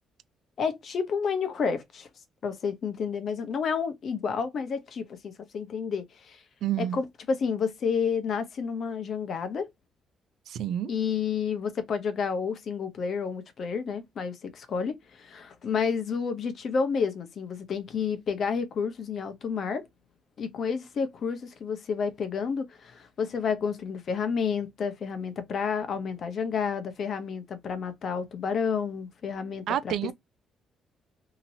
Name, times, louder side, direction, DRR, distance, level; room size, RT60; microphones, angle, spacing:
voice 1, 0.6-2.1 2.4-6.4 6.8-9.7 10.9-19.8 20.4-29.9, left 6 dB, 60° left, 0.8 m, -30 dB
voice 2, 6.6-7.0 10.5-10.9 29.7-30.1, right 11 dB, 75° right, 0.4 m, -29 dB
2.9 x 2.8 x 2.7 m
cardioid pair, 90°, 0 cm